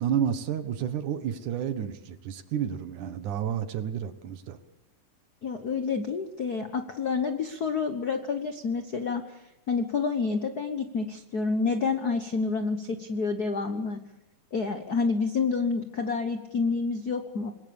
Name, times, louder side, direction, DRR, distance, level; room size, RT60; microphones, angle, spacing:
voice 1, 0.0-4.6, right 9 dB, 70° right, 10 dB, 2.8 m, -30 dB
voice 2, 5.4-9.4 9.7-14.0 14.5-17.5, left 4 dB, 90° left, 7 dB, 0.8 m, -28 dB
26.5 x 20.5 x 7.1 m, 0.94 s
omnidirectional pair, 3.7 m